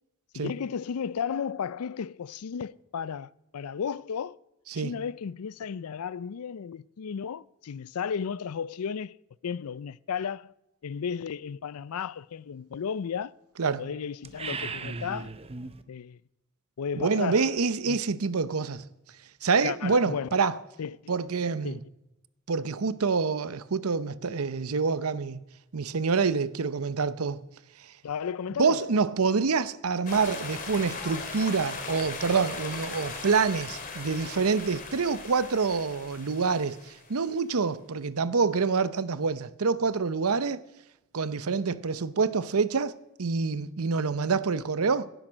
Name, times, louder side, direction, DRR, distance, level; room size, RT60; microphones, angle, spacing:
voice 1, 0.3-4.3 4.8-9.2 9.4-10.5 10.8-13.3 13.8-15.3 15.9-16.2 16.8-17.5 17.9-18.0 19.6-20.4 20.8-21.1 21.6-21.8 28.0-28.9, left 7 dB, 80° left, 0.4 m, -34 dB
sound 1, 14.2-15.8, right 4 dB, 25° right, 0.7 m, -36 dB
voice 2, 17.0-18.8 19.4-20.5 21.1-21.8 22.5-25.4 25.7-27.4 28.6-40.6 41.1-42.9 43.2-45.1, right 5 dB, 80° right, 0.7 m, -26 dB
sound 2, 30.1-37.3, left 4 dB, 40° left, 2.3 m, -39 dB
17.0 x 10.0 x 6.3 m
head